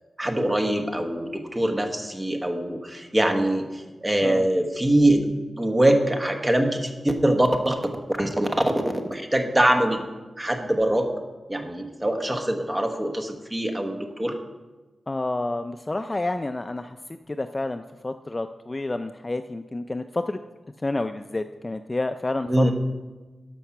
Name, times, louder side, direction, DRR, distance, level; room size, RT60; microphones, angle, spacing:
voice 1, 0.2-3.6 4.0-7.8 8.1-8.5 9.1-10.0 10.4-11.1 11.5-14.4 22.5-22.7, right 1 dB, 15° right, 4 dB, 1.1 m, -23 dB
voice 2, 15.1-20.4 20.8-22.7, left 2 dB, 20° left, 8 dB, 0.3 m, -29 dB
13.0 x 5.4 x 5.8 m, 1.2 s
wide cardioid pair, 140°, 0 cm